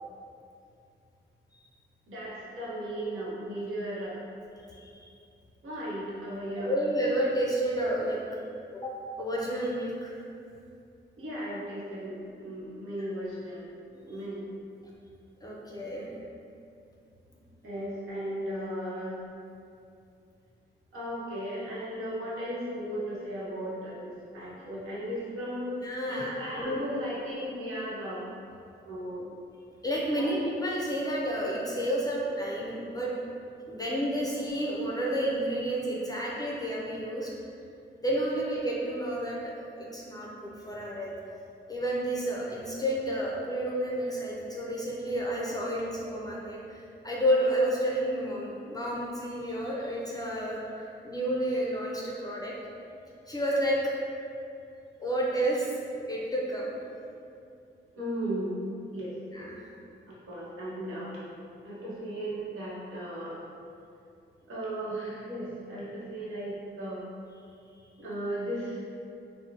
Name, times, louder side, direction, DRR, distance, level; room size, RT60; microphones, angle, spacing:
voice 1, 2.1-4.2 5.6-6.8 11.2-13.7 14.0-14.5 17.6-19.2 20.9-25.8 26.1-28.2 28.9-29.3 30.1-30.3 34.2-34.3 57.9-59.1 60.1-61.1 61.6-63.4 64.5-67.0 68.0-68.8, equal, 85° right, -8 dB, 0.8 m, -36 dB
voice 2, 4.7-5.1 6.6-8.4 8.7-10.1 14.0-14.2 15.4-16.1 24.4-24.5 25.8-26.8 29.8-33.1 33.7-37.3 38.0-41.1 41.7-50.6 51.0-52.5 53.3-53.9 55.0-55.8 56.1-56.8 59.3-59.7, right 1 dB, 20° left, -4 dB, 0.4 m, -30 dB
2.5 x 2.0 x 2.8 m, 2.5 s
cardioid pair, 65°, 21 cm